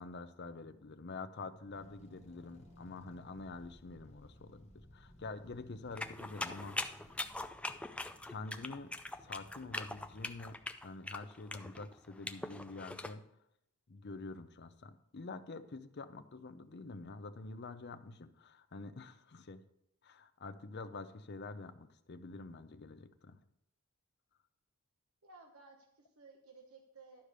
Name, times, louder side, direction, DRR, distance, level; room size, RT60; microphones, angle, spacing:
voice 1, 0.0-7.2 8.3-8.9 9.2-13.3 13.9-19.6 20.0-23.4, left 3 dB, 50° left, 10 dB, 0.6 m, -47 dB
sound 1, 1.3-5.2, right 1 dB, 25° right, 1.2 m, -66 dB
sound 2, 1.7-10.9, equal, 30° left, 1.2 m, -60 dB
sound 3, 6.0-13.1, left 2 dB, 5° left, 0.3 m, -42 dB
voice 2, 25.2-27.3, right 3 dB, 85° right, 3 dB, 1.1 m, -57 dB
11.5 x 5.0 x 6.6 m, 0.79 s
head